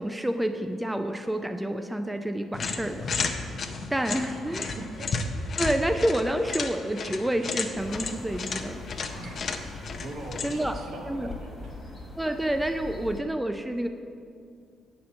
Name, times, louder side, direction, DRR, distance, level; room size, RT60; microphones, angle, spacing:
voice 1, 0.0-3.1 3.9-4.7 5.6-8.8 10.4-10.8 11.1-11.3 12.2-13.9, right 1 dB, 10° right, 6 dB, 0.4 m, -28 dB
sound 1, 2.5-10.8, left 4 dB, 50° left, 0.6 m, -33 dB
sound 2, 3.9-9.6, left 2 dB, 90° left, 1.0 m, -51 dB
voice 2, 4.2-5.1 5.3-5.6 9.1-12.0, right 1 dB, 70° right, 0 dB, 1.3 m, -42 dB
sound 3, 7.7-13.2, left 3 dB, 35° left, 1.4 m, -42 dB
7.7 x 4.4 x 6.4 m, 2.3 s
cardioid pair, 90°, 0 cm